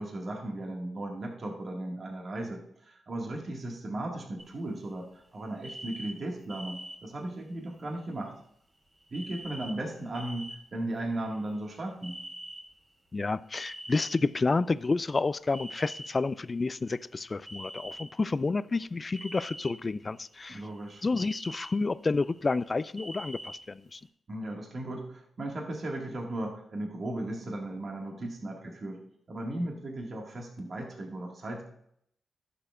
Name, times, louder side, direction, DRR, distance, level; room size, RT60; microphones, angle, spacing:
voice 1, 0.0-8.3 9.1-12.2 17.8-17.9 20.5-21.0 24.3-29.0 29.3-31.6, right 1 dB, 50° right, 0 dB, 1.9 m, -36 dB
sound 1, 4.4-5.0 5.3-5.4 5.6-7.0 7.7-7.8 9.0-9.7 10.0-10.6 11.0-11.8 12.0-12.6 13.5-14.6 15.5-16.1 16.7-16.8 17.5-18.0 19.1-19.7 20.1-20.8 21.2-21.7 22.1-23.6 24.0-24.1, equal, 35° right, 3.3 m, -43 dB
voice 2, 13.1-20.6 21.0-24.0, left 3 dB, 35° left, 17 dB, 0.3 m, -30 dB
11.5 x 6.9 x 2.5 m, 0.71 s
cardioid pair, 75°, 0 cm